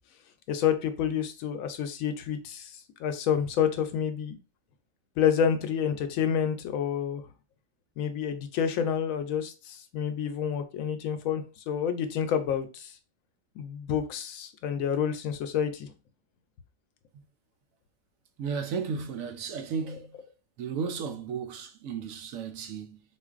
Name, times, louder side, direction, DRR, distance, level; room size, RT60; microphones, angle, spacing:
voice 1, 0.5-4.4 5.2-7.2 8.0-12.9 13.6-15.9, left 8 dB, 85° left, 1.0 m, -29 dB
voice 2, 18.4-20.1 20.6-23.0, right 6 dB, 80° right, 1.0 m, -34 dB
3.9 x 2.5 x 2.4 m
omnidirectional pair, 1.4 m